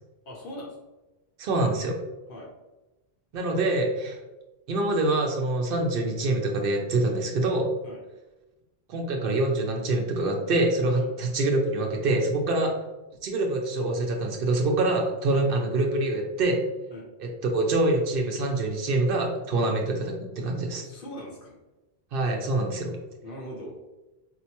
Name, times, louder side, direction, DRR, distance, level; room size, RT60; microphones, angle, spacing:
voice 1, 0.2-0.8 2.3-2.5 7.8-8.0 10.9-11.1 12.5-12.7 16.9-17.1 19.6-19.7 20.8-21.6 23.2-23.8, equal, 60° left, -2 dB, 1.0 m, -41 dB
voice 2, 1.4-2.0 3.3-4.2 4.7-7.7 8.9-12.7 13.2-16.6 17.2-20.8 22.1-23.0, right 2 dB, 65° right, 1 dB, 0.7 m, -25 dB
4.4 x 2.1 x 2.8 m, 1.1 s
omnidirectional pair, 1.1 m